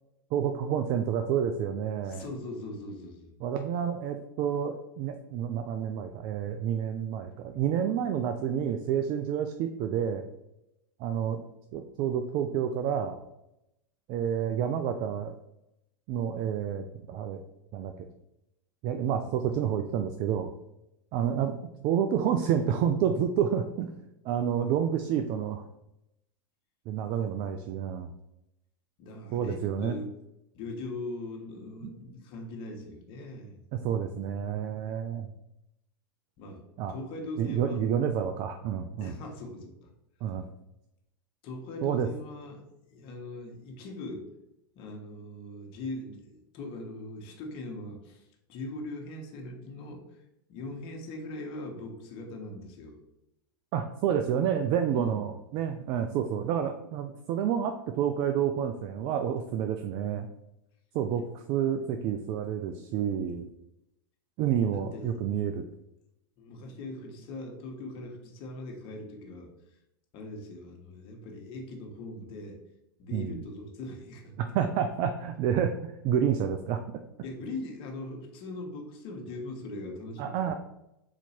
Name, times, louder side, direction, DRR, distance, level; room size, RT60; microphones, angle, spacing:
voice 1, 0.3-2.2 3.4-10.2 11.0-11.4 11.7-13.2 14.1-15.3 16.1-17.4 17.7-18.1 18.8-20.5 21.1-21.6 21.8-23.9 24.2-25.6 26.9-28.1 29.3-30.0 33.7-35.3 36.8-36.9 37.4-39.1 40.2-40.4 41.8-42.1 53.7-60.3 60.9-63.5 64.4-65.6 73.1-73.4 74.4-76.8 80.2-80.5, right 8 dB, 45° right, 7 dB, 0.4 m, -29 dB
voice 2, 2.0-3.3 29.0-30.2 30.5-33.6 36.4-36.6 36.9-37.8 39.0-39.9 41.4-44.3 44.7-50.2 50.5-53.0 54.9-55.3 64.7-65.2 66.4-69.5 70.1-72.6 73.0-74.7 77.2-80.5, left 2 dB, 50° left, 1 dB, 1.3 m, -41 dB
4.1 x 2.9 x 4.3 m, 0.86 s
hypercardioid pair, 100°, 12 cm